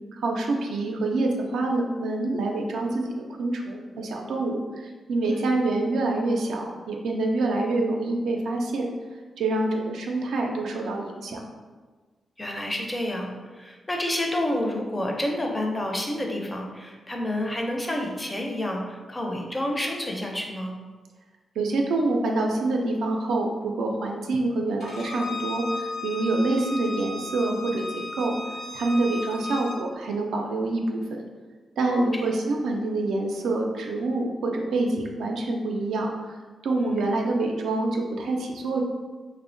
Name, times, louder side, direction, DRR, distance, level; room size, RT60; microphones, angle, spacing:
voice 1, 0.1-8.8 9.4-11.4 21.6-28.4 28.7-31.0 31.8-36.1 36.6-38.8, right 2 dB, 85° right, 1 dB, 0.3 m, -26 dB
voice 2, 12.4-20.8 26.2-26.4 31.8-32.3 36.8-37.0, left 1 dB, 20° left, 1 dB, 0.4 m, -29 dB
Bowed string instrument, 24.8-29.8, left 3 dB, 90° left, 0.9 m, -35 dB
2.8 x 2.0 x 2.5 m, 1.4 s
cardioid pair, 75°, 0 cm